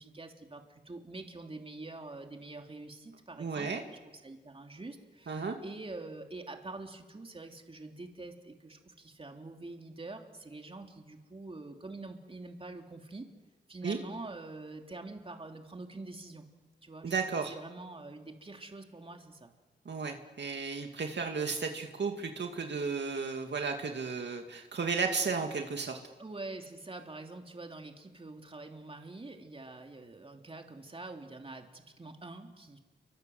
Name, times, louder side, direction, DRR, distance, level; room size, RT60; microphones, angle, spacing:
voice 1, 0.0-13.3 13.7-16.4 16.8-19.5 26.2-32.8, right 2 dB, 30° right, 3 dB, 3.1 m, -45 dB
voice 2, 3.4-3.8 5.3-5.6 13.8-14.0 17.0-17.5 19.9-26.0, right 5 dB, 65° right, 4 dB, 2.4 m, -34 dB
30.0 x 24.5 x 7.9 m, 1.3 s
wide cardioid pair, 90°, 19 cm